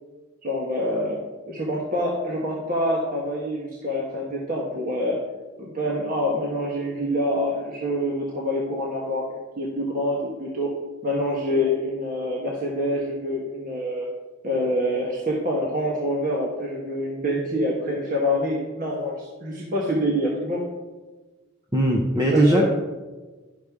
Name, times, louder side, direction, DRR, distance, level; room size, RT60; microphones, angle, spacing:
voice 1, 0.4-5.2 5.6-9.2 9.6-10.7 11.0-14.1 14.4-20.6 22.3-22.7, equal, 45° right, -4 dB, 1.3 m, -26 dB
voice 2, 21.7-22.7, right 1 dB, 20° right, 0 dB, 0.8 m, -19 dB
11.0 x 6.4 x 3.6 m, 1.2 s
head